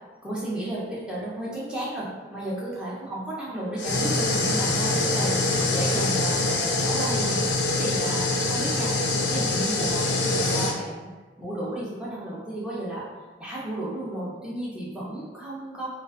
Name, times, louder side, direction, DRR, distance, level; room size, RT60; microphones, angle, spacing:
voice 1, 0.2-7.4 7.7-11.1 11.4-13.0 13.4-15.9, right 1 dB, 5° right, -7 dB, 0.5 m, -33 dB
sound 1, 3.8-10.7, left 2 dB, 65° left, 0.4 m, -24 dB
2.5 x 2.4 x 2.3 m, 1.3 s
head